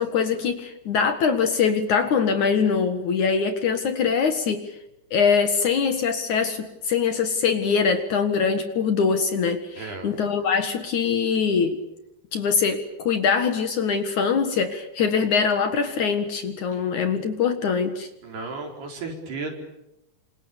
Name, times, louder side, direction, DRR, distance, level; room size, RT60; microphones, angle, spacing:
voice 1, 0.0-4.7 5.1-11.8 12.3-18.1, left 6 dB, 55° left, 8 dB, 2.6 m, -23 dB
voice 2, 9.7-10.1 16.7-16.9 18.2-19.5, right 3 dB, 70° right, 2 dB, 6.6 m, -34 dB
29.0 x 27.0 x 7.1 m, 0.88 s
omnidirectional pair, 4.8 m